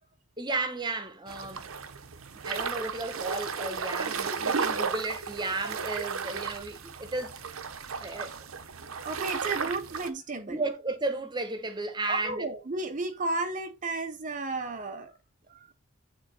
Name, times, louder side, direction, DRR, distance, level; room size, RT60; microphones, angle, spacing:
voice 1, 0.4-1.7 2.4-7.3 8.0-8.4 10.5-12.5, right 2 dB, 20° right, 1.1 m, -33 dB
sound 1, 1.3-10.1, right 5 dB, 75° right, 0.8 m, -34 dB
voice 2, 9.0-10.6 12.1-15.1 15.5-15.7, right 3 dB, 35° right, 0.6 m, -33 dB
8.9 x 3.7 x 4.1 m
head